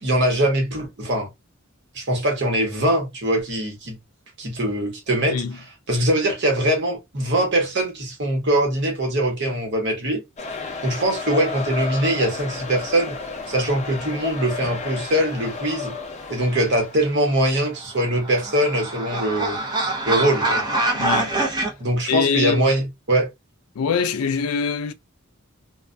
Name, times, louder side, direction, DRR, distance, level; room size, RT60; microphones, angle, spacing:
voice 1, 0.0-1.3 1.9-4.0 4.4-5.4 5.9-10.2 10.8-13.1 13.5-15.9 16.3-19.6 20.1-20.6 21.8-23.3, right 1 dB, 55° right, 1.0 m, -22 dB
sound 1, 10.4-17.2, left 4 dB, 30° left, 0.6 m, -33 dB
sound 2, 17.8-21.7, right 2 dB, 20° right, 0.6 m, -24 dB
voice 2, 21.0-21.4 22.1-22.6 23.8-24.9, left 6 dB, 90° left, 0.4 m, -23 dB
2.3 x 2.1 x 2.5 m
head